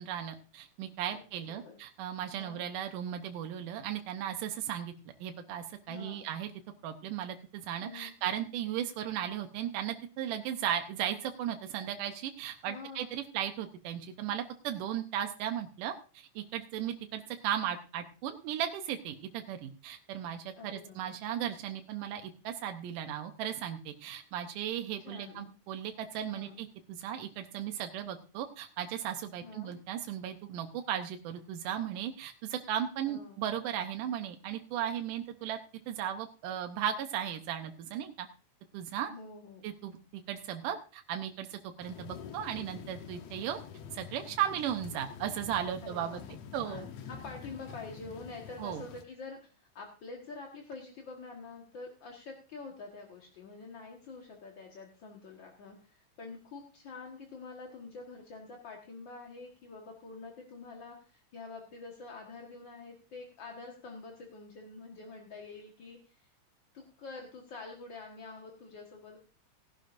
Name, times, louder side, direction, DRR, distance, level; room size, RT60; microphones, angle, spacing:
voice 1, 0.0-4.9 5.2-6.5 6.8-26.7 27.0-35.6 35.9-38.3 38.7-39.1 39.6-43.6 43.9-46.2 46.5-46.9 48.6-48.8, right 10 dB, 90° right, 6 dB, 2.4 m, -36 dB
voice 2, 1.1-1.8 2.4-2.6 5.9-6.3 7.8-8.1 12.6-13.1 20.6-21.2 25.0-25.5 26.3-26.6 29.4-29.8 33.1-33.4 39.1-39.6 45.8-46.3 46.6-66.3 66.7-69.2, left 3 dB, 45° left, 1 dB, 1.7 m, -47 dB
sound 1, 41.8-49.0, left 7 dB, 65° left, 1.9 m, -47 dB
17.5 x 11.5 x 2.6 m, 0.35 s
omnidirectional pair, 3.6 m